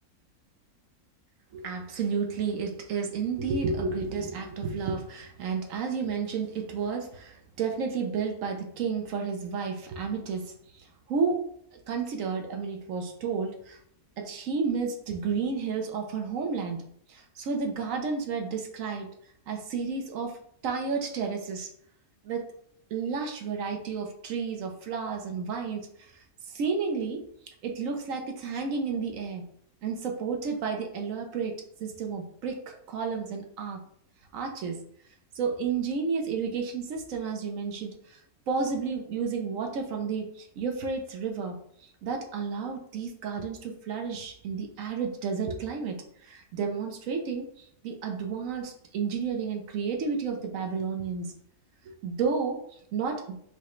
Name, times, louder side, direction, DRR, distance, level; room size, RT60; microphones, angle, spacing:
voice 1, 1.5-11.4 11.9-13.8 14.2-16.8 17.1-19.1 19.5-21.7 22.2-22.5 22.9-27.2 27.6-29.4 29.8-33.8 34.3-34.8 35.3-38.2 38.5-41.6 42.0-51.3 51.8-52.6 52.9-53.4, right 5 dB, 70° right, 3 dB, 1.0 m, -31 dB
4.7 x 2.1 x 3.0 m, 0.67 s
omnidirectional pair, 1.5 m